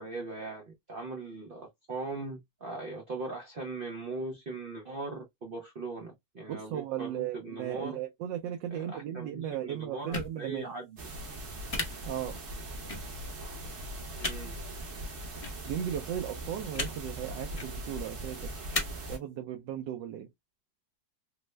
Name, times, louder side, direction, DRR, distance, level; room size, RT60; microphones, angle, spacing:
voice 1, 0.0-8.0 8.7-11.0 14.2-14.6, right 3 dB, 70° right, 0.5 m, -40 dB
voice 2, 6.5-10.7 12.0-12.4 15.6-18.5 19.1-20.3, right 10 dB, 90° right, 1.2 m, -36 dB
sound 1, 10.1-10.3 11.7-11.8 12.9-13.0 14.2-14.3 15.4-15.5 16.7-16.9 17.5-17.7 18.7-18.8, left 3 dB, 65° left, 0.3 m, -32 dB
sound 2, 11.0-19.2, right 1 dB, 50° right, 1.0 m, -40 dB
3.4 x 2.1 x 3.1 m
omnidirectional pair, 1.9 m